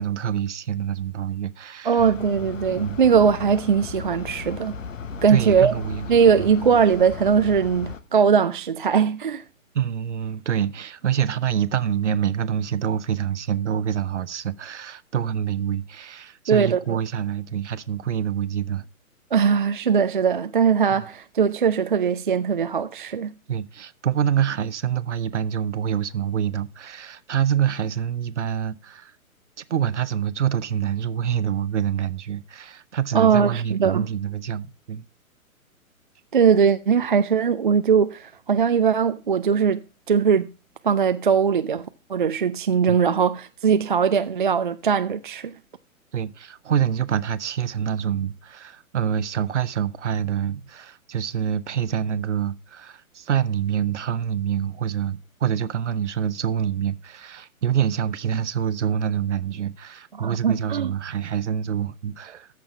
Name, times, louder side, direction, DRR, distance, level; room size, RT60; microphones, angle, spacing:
voice 1, 0.0-2.1 2.8-3.0 5.3-6.1 6.4-6.5 9.7-18.9 23.5-29.1 29.6-35.0 42.9-43.0 46.1-62.5, right 9 dB, 55° right, 0.9 m, -26 dB
voice 2, 1.8-4.8 5.2-5.7 6.1-9.4 16.5-17.0 19.3-23.3 33.1-34.1 36.3-39.8 40.1-40.5 40.8-45.5 60.2-60.9, right 6 dB, 40° right, 0.4 m, -20 dB
sound 1, 2.0-8.0, left 5 dB, 65° left, 1.2 m, -36 dB
14.0 x 6.2 x 3.5 m
figure-of-eight pair, 125°, 42 cm